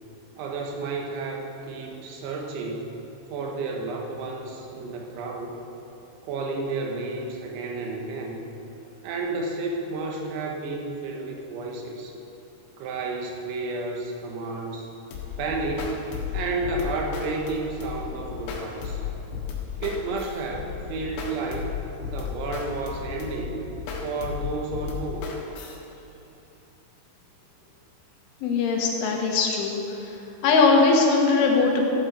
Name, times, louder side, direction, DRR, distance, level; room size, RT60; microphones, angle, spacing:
voice 1, 0.4-3.0 3.3-5.6 6.2-8.5 9.0-12.1 12.8-14.9 15.4-19.0 19.8-21.7 22.1-23.6 24.0-25.3, right 3 dB, 80° right, 0 dB, 3.8 m, -31 dB
sound 1, 15.1-25.8, left 7 dB, 75° left, 3.5 m, -34 dB
voice 2, 28.4-30.1 30.4-31.8, left 4 dB, 90° left, 0 dB, 4.0 m, -20 dB
13.5 x 9.3 x 6.6 m, 2.9 s
omnidirectional pair, 5.3 m